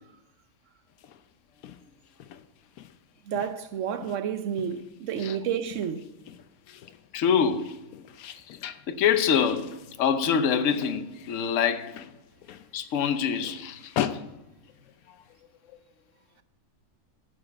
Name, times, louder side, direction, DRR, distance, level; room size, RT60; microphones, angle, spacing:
sound 1, 0.9-15.4, left 10 dB, 85° left, 1.1 m, -41 dB
voice 1, 3.3-6.0, right 8 dB, 60° right, 1.1 m, -30 dB
voice 2, 7.1-7.7 8.9-11.9 12.7-13.9, left 7 dB, 65° left, 1.1 m, -25 dB
8.7 x 7.5 x 6.9 m
omnidirectional pair, 1.5 m